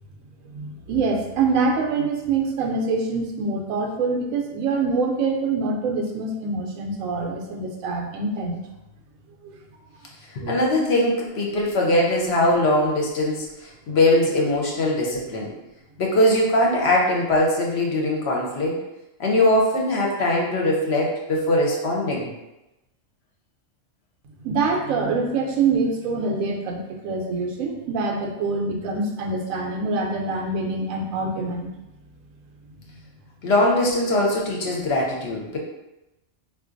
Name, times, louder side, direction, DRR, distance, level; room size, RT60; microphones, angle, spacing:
voice 1, 0.5-8.6 9.4-9.6 10.4-10.6 24.4-31.7, right 4 dB, 90° right, 2 dB, 1.0 m, -25 dB
voice 2, 10.3-13.5 13.9-15.5 16.0-18.8 19.2-22.3 33.4-35.6, left 1 dB, 60° left, -2 dB, 0.8 m, -21 dB
3.7 x 2.5 x 2.5 m, 0.96 s
omnidirectional pair, 1.4 m